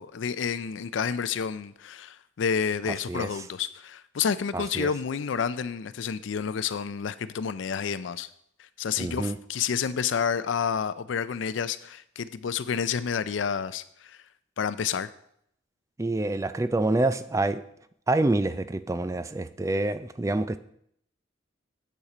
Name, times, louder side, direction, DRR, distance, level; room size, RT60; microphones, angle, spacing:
voice 1, 0.0-8.3 8.8-14.2 14.6-15.1, left 6 dB, 75° left, 0.4 m, -29 dB
voice 2, 4.5-4.9 9.0-9.3 16.0-17.6 18.1-20.6, right 2 dB, 15° right, 0.3 m, -27 dB
8.1 x 7.1 x 4.9 m
head